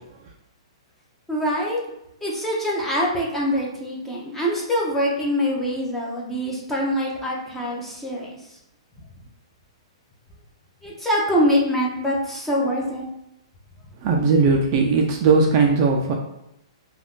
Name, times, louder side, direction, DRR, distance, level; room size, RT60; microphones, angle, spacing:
voice 1, 1.3-1.8 2.2-8.4 10.8-13.1, equal, 5° left, -3 dB, 0.6 m, -24 dB
voice 2, 14.0-16.1, right 4 dB, 35° right, 1 dB, 0.4 m, -18 dB
2.5 x 2.3 x 3.6 m, 0.83 s
hypercardioid pair, 150°, 3 cm